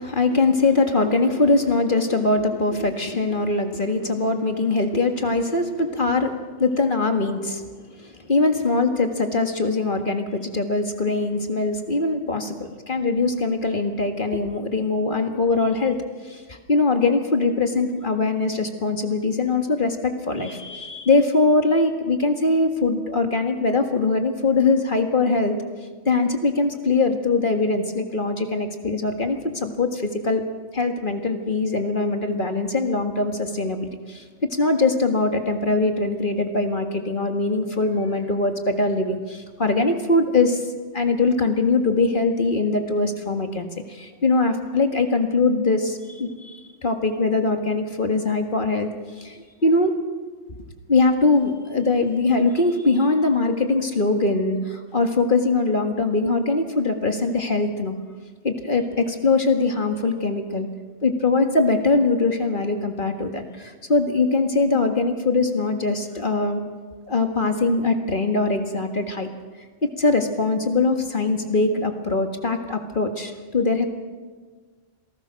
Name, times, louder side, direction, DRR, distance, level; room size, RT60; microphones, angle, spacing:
voice 1, 0.0-7.7 8.0-16.0 16.3-16.4 16.7-25.6 26.1-30.4 30.7-34.2 34.6-40.6 40.9-48.9 49.2-49.9 50.9-57.9 58.4-60.7 61.0-66.6 67.1-69.3 69.8-73.9, left 3 dB, 45° left, 5 dB, 1.9 m, -22 dB
27.0 x 18.5 x 6.4 m, 1.5 s
omnidirectional pair, 1.3 m